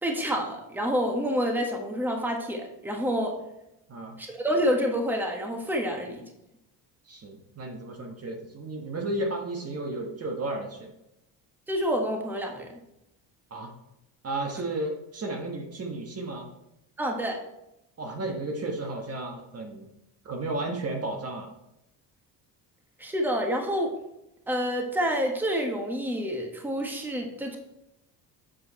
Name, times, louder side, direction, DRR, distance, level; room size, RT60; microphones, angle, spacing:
voice 1, 0.0-3.4 4.2-6.2 11.7-12.7 17.0-17.4 23.0-23.9 24.5-27.6, equal, 5° right, 2 dB, 1.3 m, -28 dB
voice 2, 7.1-10.9 13.5-13.7 14.2-16.5 18.0-19.9 20.2-21.5, right 2 dB, 35° right, 3 dB, 1.3 m, -33 dB
7.6 x 4.6 x 4.3 m, 0.86 s
cardioid pair, 95°, 42 cm